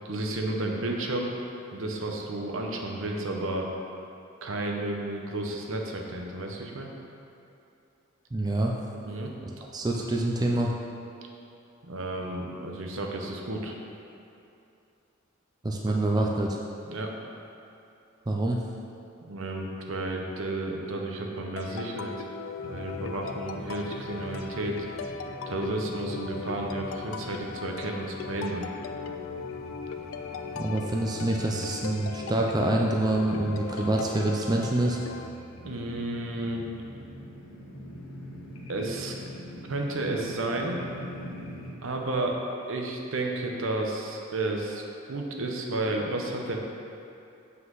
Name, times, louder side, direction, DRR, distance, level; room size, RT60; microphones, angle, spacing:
voice 1, 0.0-1.3 1.7-3.7 4.4-6.9 9.0-9.3 11.8-13.7 16.9-17.1 19.2-22.1 22.6-24.9 25.5-28.7 35.6-36.7 38.7-39.1 39.7-40.8 41.8-42.4 42.7-44.8 45.1-46.6, right 2 dB, 70° right, 1 dB, 0.8 m, -32 dB
voice 2, 8.3-8.9 9.7-10.7 15.6-16.6 18.3-18.6 30.6-35.0, right 1 dB, 20° right, -1 dB, 0.4 m, -26 dB
sound 1, 21.6-35.3, left 5 dB, 75° left, 0.4 m, -38 dB
sound 2, 22.6-41.7, equal, 90° left, 1.1 m, -44 dB
7.5 x 5.6 x 3.9 m, 2.7 s
head